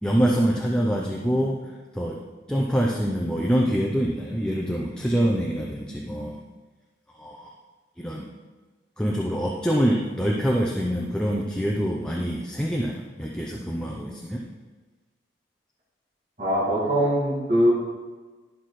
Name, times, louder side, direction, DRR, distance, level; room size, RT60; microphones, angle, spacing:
voice 1, 0.0-1.6 1.9-2.2 2.5-6.4 7.2-7.5 8.0-8.3 9.0-14.4, equal, 5° left, -2 dB, 0.6 m, -25 dB
voice 2, 16.4-17.7, equal, 40° right, -8 dB, 2.3 m, -22 dB
11.5 x 5.9 x 4.9 m, 1.3 s
head